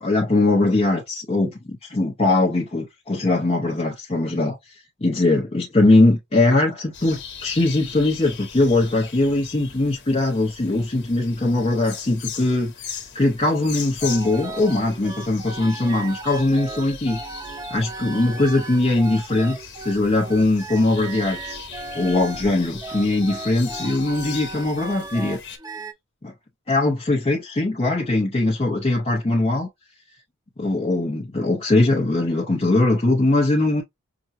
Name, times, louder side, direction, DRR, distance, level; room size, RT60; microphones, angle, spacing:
voice 1, 0.0-4.7 5.0-17.2 17.7-21.7 21.9-25.4 26.2-26.3 26.7-29.7 30.6-33.8, left 2 dB, 30° left, 0.7 m, -21 dB
sound 1, 6.9-25.6, left 7 dB, 55° left, 1.2 m, -39 dB
sound 2, 14.0-25.9, right 3 dB, 20° right, 0.5 m, -36 dB
5.9 x 2.2 x 2.5 m
head